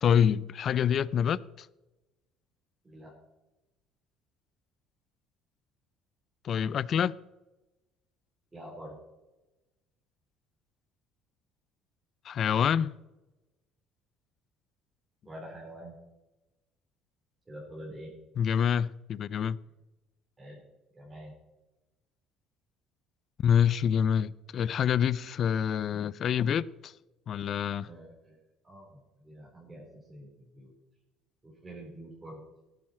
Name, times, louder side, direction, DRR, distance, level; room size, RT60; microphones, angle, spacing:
voice 1, 0.0-1.7 6.4-7.2 12.2-12.9 18.4-19.6 23.4-26.9 27.3-27.9, left 8 dB, 40° left, 0.4 m, -26 dB
voice 2, 8.5-8.9 15.3-16.0 17.5-18.1 20.4-20.6 21.0-21.3 27.8-28.3 28.6-30.7 31.6-32.4, right 1 dB, 15° right, 4.0 m, -46 dB
18.0 x 9.2 x 4.4 m
cardioid pair, 155°, 0 cm